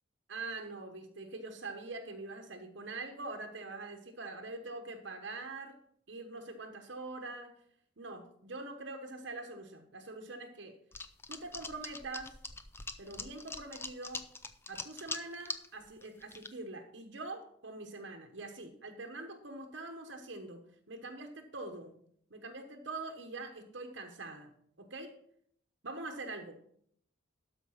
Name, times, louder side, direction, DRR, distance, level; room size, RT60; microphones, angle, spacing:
voice 1, 0.3-5.8 6.1-7.5 8.0-10.8 11.3-12.4 13.0-14.3 14.7-21.9 22.3-24.5 24.8-25.1 25.8-26.6, right 2 dB, 60° right, 4 dB, 1.1 m, -44 dB
sound 1, 10.9-15.7 16.0-16.5, left 3 dB, 10° left, 0.5 m, -42 dB
12.5 x 5.1 x 5.7 m, 0.67 s
head